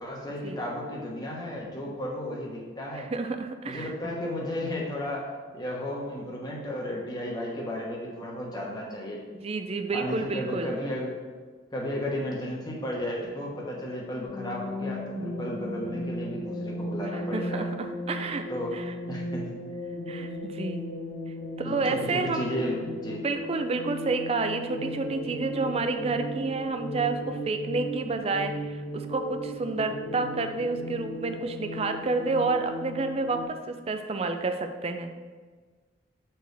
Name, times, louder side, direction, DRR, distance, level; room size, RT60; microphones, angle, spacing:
voice 1, 0.0-3.1 3.6-9.2 9.9-11.1 11.7-17.7 18.5-19.4 21.6-23.2, left 1 dB, 20° left, -3 dB, 1.2 m, -34 dB
voice 2, 2.9-3.9 9.3-10.8 17.1-18.4 18.7-18.8 20.1-20.9 21.6-22.7 23.2-35.1, right 3 dB, 30° right, 7 dB, 0.4 m, -30 dB
sound 1, 14.2-33.4, equal, 50° left, 1.2 m, -36 dB
7.7 x 4.5 x 3.4 m, 1.5 s
head